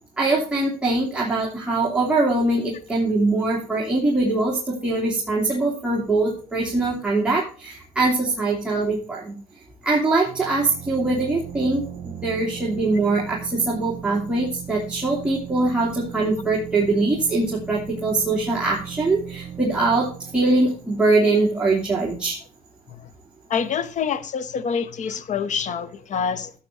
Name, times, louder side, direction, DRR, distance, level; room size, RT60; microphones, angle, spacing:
voice 1, 0.2-9.4 9.8-22.4, right 2 dB, 5° right, 2.9 m, -22 dB
sound 1, 10.2-21.8, right 9 dB, 40° right, 3.2 m, -38 dB
voice 2, 23.5-26.5, left 6 dB, 45° left, 1.0 m, -26 dB
13.5 x 8.6 x 2.7 m
cardioid pair, 110°, 17 cm